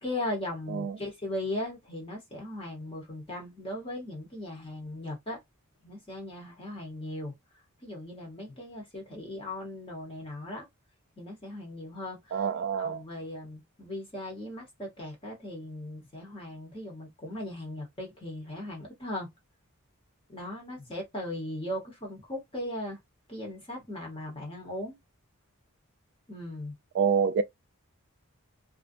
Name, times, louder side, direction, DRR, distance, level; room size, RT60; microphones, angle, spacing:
voice 1, 0.0-5.4 5.8-7.3 7.8-10.7 11.2-12.4 12.8-19.3 20.3-23.0 23.3-25.0 26.3-26.7, left 1 dB, 25° left, 0.9 m, -38 dB
voice 2, 12.3-13.0 26.9-27.4, right 6 dB, 55° right, 0.3 m, -27 dB
2.5 x 2.2 x 2.5 m
head